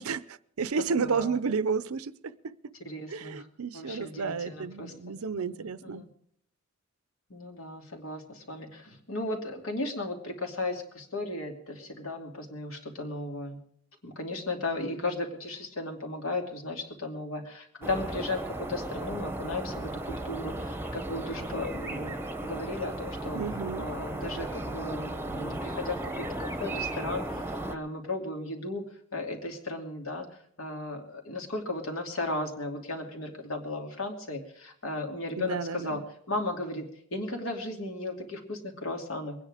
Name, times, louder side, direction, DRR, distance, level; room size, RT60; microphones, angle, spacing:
voice 1, 0.0-2.7 3.1-6.0 23.3-23.9 35.4-36.0, right 5 dB, 90° right, 0.6 m, -32 dB
voice 2, 0.8-1.4 2.8-3.4 3.7-6.1 7.3-13.6 14.0-22.1 22.4-23.4 23.8-27.4 27.7-28.8 29.1-30.3 30.6-36.0 36.3-36.9 37.1-39.4, left 2 dB, 75° left, 2.8 m, -35 dB
sound 1, 17.8-27.8, right 1 dB, 10° right, 0.9 m, -35 dB
22.5 x 10.0 x 5.0 m
head